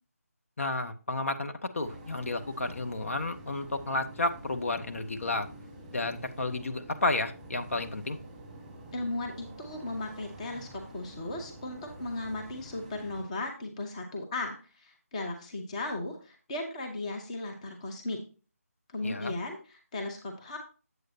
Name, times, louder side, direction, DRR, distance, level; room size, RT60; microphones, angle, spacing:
voice 1, 0.6-5.5 5.9-8.2 19.0-19.3, left 2 dB, 60° left, 7 dB, 1.0 m, -32 dB
sound 1, 1.8-13.2, right 1 dB, 5° right, 1.8 m, -48 dB
voice 2, 8.9-18.3 18.9-20.6, left 2 dB, 25° left, 3 dB, 1.0 m, -36 dB
8.1 x 7.6 x 2.8 m, 0.35 s
figure-of-eight pair, 160°, 8 cm